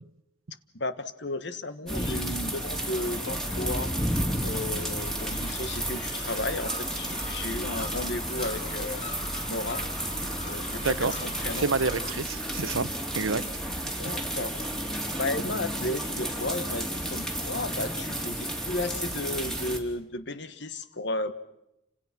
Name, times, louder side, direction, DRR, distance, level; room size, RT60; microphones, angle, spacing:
voice 1, 0.7-3.9 4.4-9.0 9.5-9.9 10.4-11.7 13.8-14.6 15.2-21.3, left 2 dB, 60° left, 12 dB, 1.4 m, -34 dB
sound 1, 1.9-19.8, right 1 dB, 5° left, 3.2 m, -32 dB
Gull seagull, 2.6-12.1, left 1 dB, 35° left, 4.0 m, -41 dB
voice 2, 10.8-11.1 11.6-13.5, right 4 dB, 85° right, 14 dB, 1.0 m, -28 dB
29.5 x 27.0 x 6.0 m, 0.87 s
head